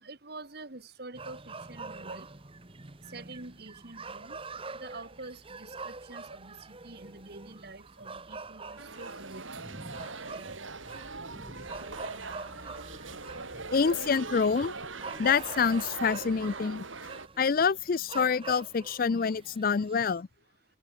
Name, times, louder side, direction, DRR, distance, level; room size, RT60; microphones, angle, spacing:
voice 1, 0.0-2.3 3.1-4.4 4.8-9.5, right 2 dB, 50° right, 1.9 m, -46 dB
sound 1, 1.1-20.2, right 3 dB, 25° right, 1.2 m, -45 dB
sound 2, 8.8-17.3, right 3 dB, 80° right, 5.0 m, -41 dB
voice 2, 13.7-14.7 15.1-16.9 17.4-20.3, left 5 dB, 45° left, 0.4 m, -26 dB
head